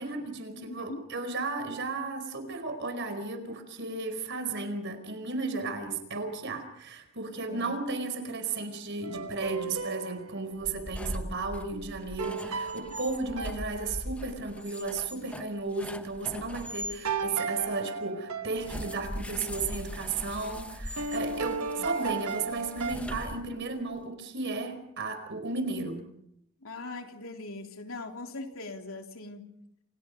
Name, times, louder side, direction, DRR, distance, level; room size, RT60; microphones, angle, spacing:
voice 1, 0.0-26.0, right 3 dB, 55° right, 8 dB, 4.7 m, -34 dB
voice 2, 0.6-1.1 7.5-7.8 21.5-22.1 26.6-29.5, left 2 dB, 70° left, 3 dB, 3.4 m, -41 dB
sound 1, 9.0-10.6 12.2-14.4 17.0-19.1 21.0-22.9, right 4 dB, 80° right, 1.4 m, -35 dB
sound 2, 10.6-17.0 18.6-23.8, equal, 5° left, 1.1 m, -40 dB
29.5 x 28.0 x 5.3 m, 0.77 s
head